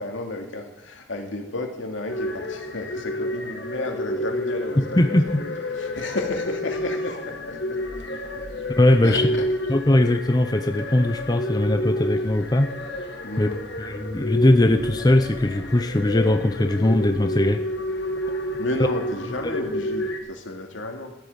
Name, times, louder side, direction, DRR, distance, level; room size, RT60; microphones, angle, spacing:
voice 1, 0.0-5.5 5.8-7.8 8.3-8.4 9.0-9.7 13.2-13.6 18.6-21.2, left 2 dB, 85° left, 2 dB, 2.5 m, -32 dB
sound 1, 2.1-20.2, left 1 dB, 65° left, 1.9 m, -30 dB
voice 2, 4.8-5.3 8.8-9.3 9.7-12.7 13.4-13.5 13.8-17.6 19.4-19.6, left 1 dB, 20° left, 7 dB, 0.6 m, -20 dB
14.0 x 8.6 x 7.9 m, 0.97 s
head